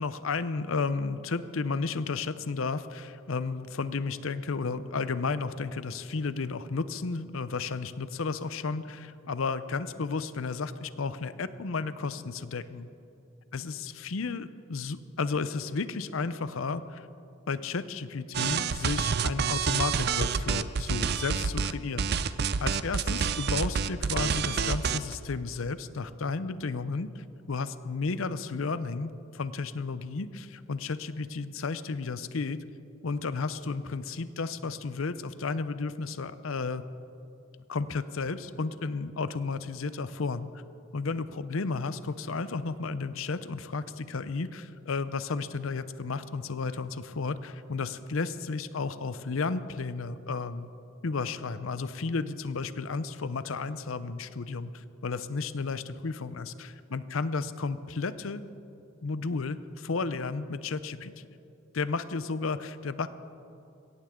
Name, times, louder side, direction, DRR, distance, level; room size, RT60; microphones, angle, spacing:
voice 1, 0.0-12.9 13.5-17.1 17.5-22.1 22.6-32.6 33.0-36.9 37.7-40.5 40.9-50.7 51.0-58.4 59.0-61.1 61.7-63.1, left 4 dB, 75° left, 14 dB, 0.6 m, -33 dB
sound 1, 18.3-21.7 22.0-25.1, right 6 dB, 50° right, 0.5 m, -28 dB
21.5 x 17.0 x 3.7 m, 2.7 s
head